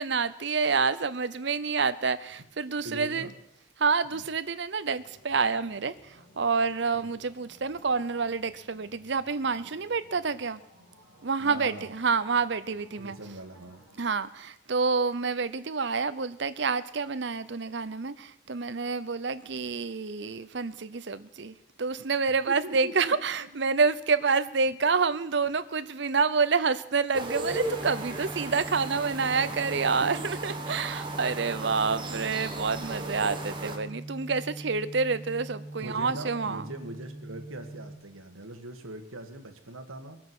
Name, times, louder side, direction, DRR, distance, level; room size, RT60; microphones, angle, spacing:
voice 1, 0.0-3.3 3.8-10.6 11.2-13.2 14.0-36.6, right 4 dB, 55° right, 14 dB, 0.7 m, -28 dB
voice 2, 2.8-3.3 4.1-4.3 6.9-7.1 11.4-11.9 13.0-13.8 22.5-23.6 30.1-30.4 35.8-40.2, right 1 dB, 90° right, 6 dB, 1.8 m, -42 dB
sound 1, 5.0-14.2, equal, 60° left, 6.3 m, -58 dB
sound 2, 27.1-33.8, right 2 dB, 25° right, 1.6 m, -37 dB
sound 3, 27.5-38.0, right 1 dB, 10° left, 1.4 m, -42 dB
22.5 x 8.6 x 6.2 m, 0.80 s
head